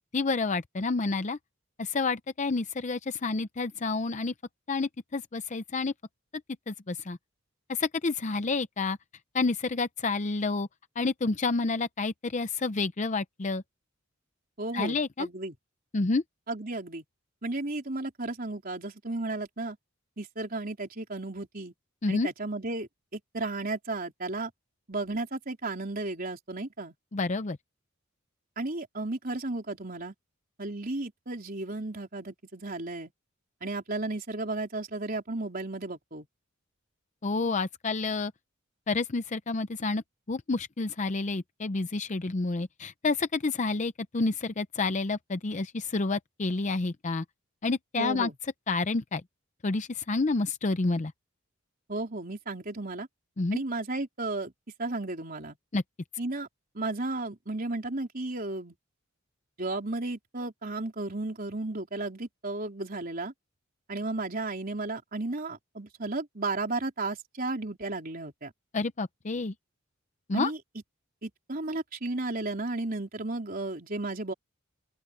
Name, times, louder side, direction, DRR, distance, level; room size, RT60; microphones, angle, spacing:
voice 1, 0.1-1.4 1.8-4.3 4.7-5.9 6.7-7.2 7.7-9.0 9.3-10.7 11.0-13.6 14.7-15.3 15.9-16.2 22.0-22.3 27.1-27.6 37.2-38.3 38.9-40.0 40.3-47.2 47.6-48.3 48.7-49.2 49.6-51.1 53.4-53.6 55.7-55.8 68.7-69.5 70.3-70.5, left 3 dB, 35° left, 0.6 m, -29 dB
voice 2, 14.6-15.5 16.5-17.0 17.4-19.8 20.2-21.7 22.1-24.5 24.9-26.9 28.6-30.1 30.6-33.1 33.6-36.3 48.0-48.3 51.9-53.1 53.5-54.5 54.8-55.6 56.2-56.5 56.7-58.8 59.6-63.3 63.9-68.5 70.3-70.6 71.2-74.3, right 2 dB, 45° right, 3.9 m, -34 dB
open air
head